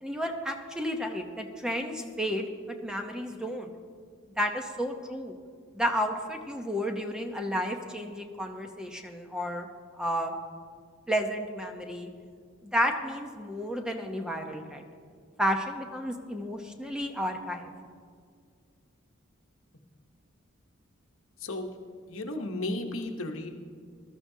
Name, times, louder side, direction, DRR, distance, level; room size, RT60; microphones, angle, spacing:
voice 1, 0.0-3.7 4.4-5.3 5.7-9.7 9.9-10.3 11.1-12.1 12.7-14.9 15.4-17.7, equal, 5° right, 3 dB, 0.8 m, -32 dB
voice 2, 22.1-23.5, left 2 dB, 75° left, 4 dB, 1.1 m, -34 dB
20.0 x 13.0 x 2.8 m, 2.1 s
head